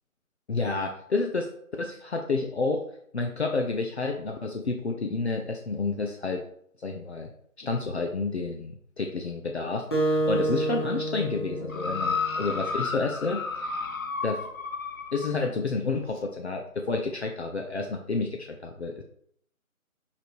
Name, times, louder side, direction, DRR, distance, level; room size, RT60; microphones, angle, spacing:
voice 1, 0.5-1.5 1.8-2.8 3.1-6.4 6.8-7.3 7.6-13.7 14.2-14.4 15.1-19.0, left 3 dB, 50° left, 3 dB, 0.9 m, -30 dB
Acoustic guitar, 9.9-12.7, right 2 dB, 20° left, 1.0 m, -28 dB
sound 1, 11.7-15.4 16.2-16.3, left 4 dB, 70° left, 1.4 m, -32 dB
5.8 x 5.3 x 4.7 m, 0.65 s
figure-of-eight pair, 160°, 42 cm